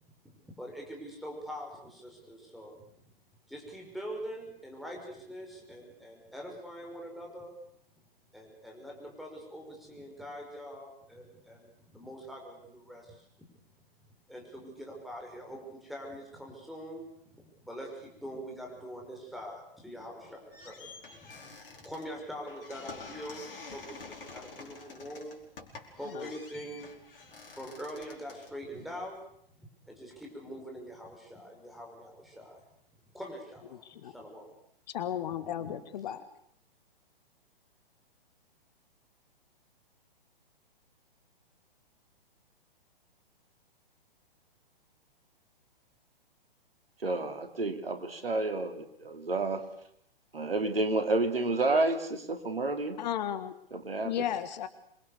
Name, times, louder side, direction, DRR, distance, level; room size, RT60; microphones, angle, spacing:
voice 1, 0.4-2.8 3.5-7.5 8.3-13.3 14.3-17.0 17.3-21.0 21.3-21.6 21.8-25.4 26.0-26.9 27.4-29.2 29.6-32.6 33.1-34.5 35.6-35.8, equal, ahead, 0 dB, 5.7 m, -44 dB
sound 1, 20.2-29.3, left 4 dB, 65° left, 5.0 m, -49 dB
voice 2, 33.8-34.1 34.9-36.2 53.0-53.5 54.0-54.7, left 10 dB, 45° left, 12 dB, 1.7 m, -34 dB
voice 3, 47.0-49.6 50.3-53.0 53.7-54.2, right 2 dB, 80° right, 7 dB, 3.0 m, -30 dB
27.0 x 22.5 x 6.9 m, 0.72 s
figure-of-eight pair, 120°, 29 cm